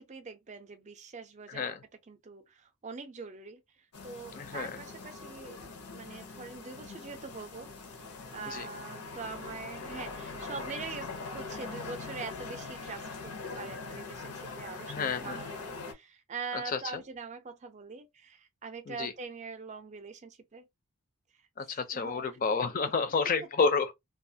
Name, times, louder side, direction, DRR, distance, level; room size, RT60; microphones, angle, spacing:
voice 1, 0.0-1.8 2.1-5.7 5.9-7.7 8.3-20.7 21.9-22.4, right 5 dB, 30° right, 0.4 m, -43 dB
voice 2, 1.5-1.8 4.3-4.7 8.5-8.7 14.9-15.4 16.7-16.8 18.9-19.1 21.6-23.9, left 4 dB, 40° left, 0.4 m, -30 dB
sound 1, 3.9-15.9, left 4 dB, 85° left, 0.7 m, -42 dB
2.4 x 2.3 x 2.6 m
head